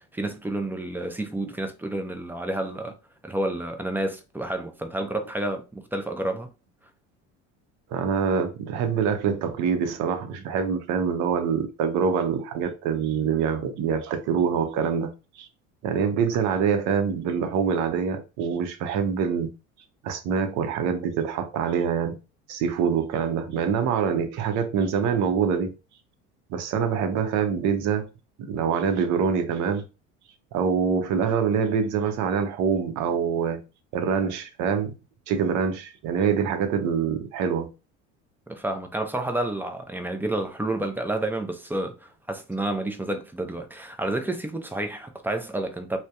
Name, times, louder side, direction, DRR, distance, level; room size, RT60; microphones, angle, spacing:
voice 1, 0.0-2.9 3.2-6.5 38.5-46.0, right 1 dB, 5° right, 0.4 m, -30 dB
voice 2, 7.9-15.5 15.8-19.5 20.0-22.2 22.5-25.7 26.5-28.1 28.4-29.8 30.5-33.6 33.9-34.9 35.3-37.7, right 6 dB, 60° right, 0.6 m, -25 dB
2.6 x 2.1 x 2.2 m
supercardioid pair, 85°, 33 cm